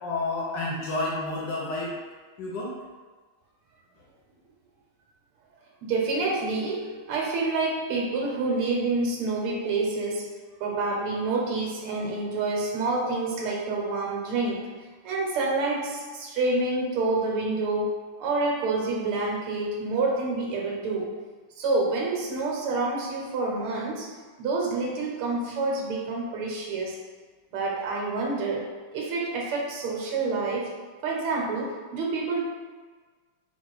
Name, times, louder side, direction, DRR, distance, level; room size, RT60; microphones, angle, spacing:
voice 1, 0.0-1.9 2.4-2.7, left 2 dB, 65° left, -4 dB, 1.2 m, -30 dB
voice 2, 5.8-10.3 10.6-14.7 15.0-21.1 21.6-27.0 27.5-30.7 31.0-32.4, right 3 dB, 85° right, -1 dB, 1.7 m, -28 dB
4.0 x 2.4 x 4.6 m, 1.4 s
omnidirectional pair, 2.4 m